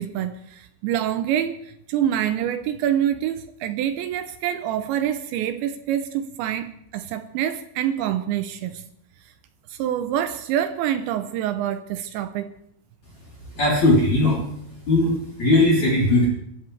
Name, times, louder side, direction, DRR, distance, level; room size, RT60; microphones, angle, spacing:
voice 1, 0.0-8.8 9.7-12.5, right 10 dB, 80° right, 2.7 m, -26 dB
voice 2, 13.5-14.4 14.9-16.3, left 2 dB, 40° left, 4.1 m, -18 dB
27.5 x 14.0 x 3.3 m
omnidirectional pair, 5.7 m